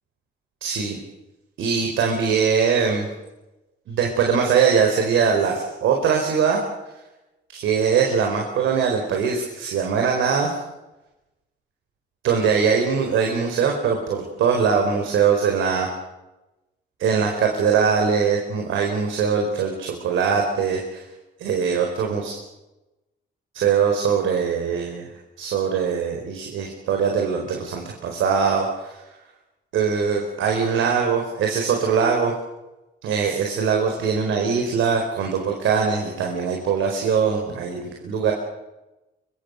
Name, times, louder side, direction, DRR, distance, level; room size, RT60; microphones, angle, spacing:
voice 1, 0.6-1.0 1.6-3.1 3.9-6.6 7.5-10.5 12.2-15.9 17.0-21.0 21.4-22.4 23.5-25.1 25.4-29.0 29.7-32.3 33.0-38.3, right 6 dB, 80° right, 2 dB, 4.6 m, -22 dB
24.0 x 24.0 x 6.5 m, 1.0 s
cardioid pair, 90°, 20 cm